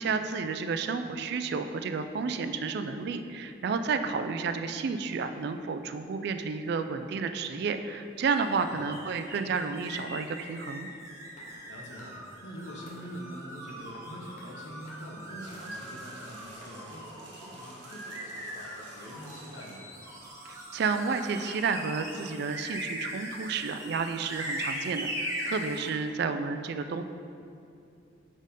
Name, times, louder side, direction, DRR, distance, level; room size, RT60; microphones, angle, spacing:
voice 1, 0.0-10.9 20.4-27.0, right 5 dB, 60° right, 9 dB, 0.3 m, -31 dB
sound 1, 8.2-25.9, equal, 15° right, 1.0 m, -40 dB
voice 2, 8.5-8.8 11.5-19.8, equal, 75° left, -1 dB, 1.0 m, -45 dB
sound 2, 11.3-11.6 12.0-12.4 12.8-13.2 13.7-14.0 14.4-14.5 14.8-15.1 15.5-15.9 16.4-16.9, left 1 dB, 45° left, 0.8 m, -55 dB
sound 3, 15.4-21.7, right 2 dB, 80° right, 1.1 m, -51 dB
4.8 x 4.4 x 5.2 m, 2.5 s
head